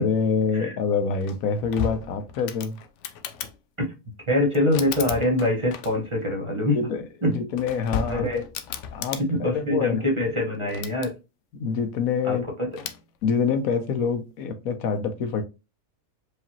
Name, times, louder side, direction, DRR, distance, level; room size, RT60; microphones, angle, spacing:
voice 1, 0.0-2.8 6.7-8.3 8.9-10.1 11.5-12.5 13.2-15.4, left 5 dB, 85° left, 1.2 m, -26 dB
sound 1, 1.2-3.6 4.5-6.2 7.3-9.2 10.5-11.1 12.7-13.0, left 8 dB, 70° left, 0.8 m, -34 dB
voice 2, 4.3-6.8 7.2-7.4 8.1-8.4 9.2-11.1 12.2-12.7, left 1 dB, 25° right, 1.1 m, -24 dB
4.9 x 2.8 x 2.8 m
omnidirectional pair, 1.5 m